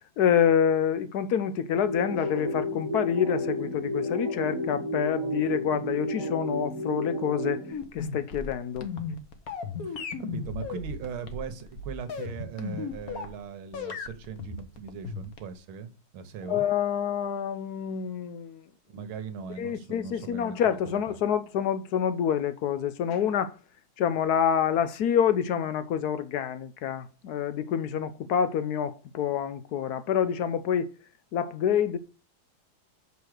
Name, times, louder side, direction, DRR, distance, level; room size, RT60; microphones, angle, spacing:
voice 1, 0.0-7.6 7.9-8.9 16.5-18.6 19.6-23.5 24.0-30.9 31.3-32.0, left 8 dB, 70° left, 0.9 m, -27 dB
sound 1, 1.7-7.7, equal, 15° right, 1.2 m, -31 dB
sound 2, 7.7-13.4 13.7-15.6, left 5 dB, 50° left, 1.3 m, -36 dB
voice 2, 9.8-16.6 18.9-21.2, right 7 dB, 80° right, 1.9 m, -39 dB
6.1 x 5.5 x 6.4 m
omnidirectional pair, 2.3 m